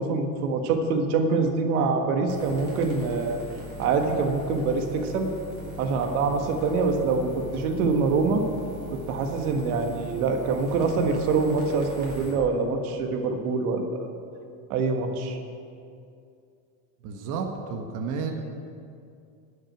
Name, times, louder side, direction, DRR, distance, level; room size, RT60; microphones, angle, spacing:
voice 1, 0.0-3.4 3.8-5.3 5.8-8.4 8.9-14.1 14.7-15.4, right 4 dB, 80° right, 4 dB, 1.6 m, -25 dB
sound 1, 2.3-12.3, equal, 25° right, 3.2 m, -41 dB
voice 2, 17.0-18.3, right 5 dB, 45° right, 3 dB, 1.2 m, -31 dB
12.0 x 6.5 x 9.0 m, 2.5 s
supercardioid pair, 135°, 43 cm